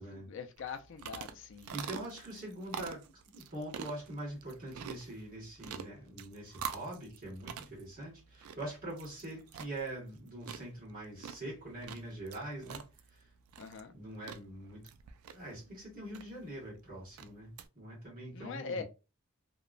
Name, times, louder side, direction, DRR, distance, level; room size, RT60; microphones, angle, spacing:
voice 1, 0.0-2.0 13.6-13.9 18.3-18.8, left 5 dB, 55° left, 0.4 m, -43 dB
sound 1, 0.6-17.7, right 7 dB, 75° right, 0.3 m, -47 dB
voice 2, 1.7-3.0 3.3-12.8 13.1-13.3 13.9-14.8 15.3-18.8, right 1 dB, 40° right, 1.4 m, -43 dB
2.9 x 2.1 x 2.4 m
head